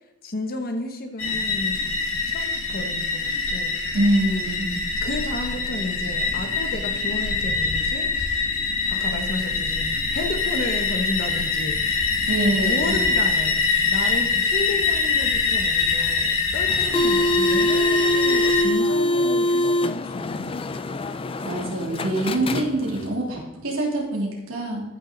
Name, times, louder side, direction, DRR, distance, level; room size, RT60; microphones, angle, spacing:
voice 1, 0.2-1.9 2.3-3.7 5.0-8.1 8.9-12.2 12.6-21.1, left 2 dB, 45° left, 5 dB, 1.1 m, -32 dB
sound 1, 1.2-18.6, left 4 dB, 70° left, 2.0 m, -24 dB
voice 2, 3.9-4.7 12.3-13.0 21.4-24.8, right 1 dB, 65° right, -3 dB, 3.1 m, -24 dB
sound 2, 16.7-23.1, left 1 dB, 25° left, 0.4 m, -24 dB
14.0 x 6.3 x 3.9 m, 0.92 s
head